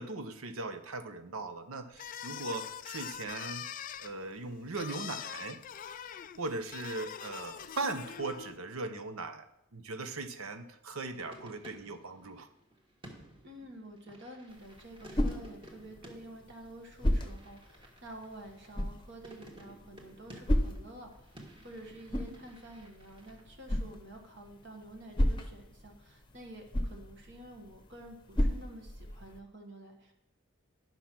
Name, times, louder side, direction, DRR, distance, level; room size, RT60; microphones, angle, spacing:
voice 1, 0.0-3.7 4.0-5.6 6.4-9.5 9.7-12.5, right 3 dB, 75° right, 9 dB, 0.9 m, -39 dB
sound 1, 1.9-8.6, left 9 dB, 40° left, 0.3 m, -43 dB
sound 2, 11.0-23.4, equal, 25° right, 1.5 m, -55 dB
voice 2, 13.4-30.1, right 1 dB, 55° right, 2 dB, 1.3 m, -50 dB
sound 3, 14.5-29.4, left 1 dB, 20° left, 0.8 m, -36 dB
10.5 x 5.8 x 5.9 m, 0.83 s
head